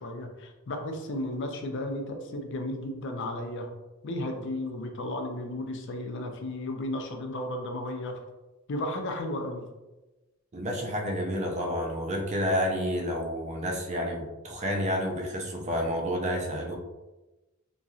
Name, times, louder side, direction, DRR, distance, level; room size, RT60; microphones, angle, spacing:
voice 1, 0.0-3.7 4.0-8.2 8.7-9.6, left 1 dB, 60° left, 4 dB, 0.5 m, -34 dB
voice 2, 10.5-16.8, equal, 35° right, 1 dB, 0.5 m, -30 dB
3.0 x 2.6 x 2.3 m, 1.1 s
head